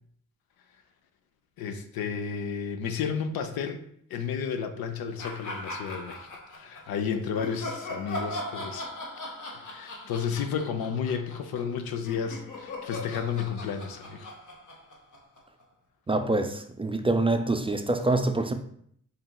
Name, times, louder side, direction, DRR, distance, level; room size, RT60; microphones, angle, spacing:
voice 1, 1.6-3.8 4.1-8.9 9.5-14.3, left 6 dB, 90° left, 0.5 m, -32 dB
sound 1, 5.2-6.8 7.3-15.6, left 1 dB, 60° left, 0.8 m, -39 dB
voice 2, 16.1-18.5, right 2 dB, 15° right, 0.3 m, -25 dB
4.0 x 3.9 x 2.2 m
cardioid pair, 50°, 35 cm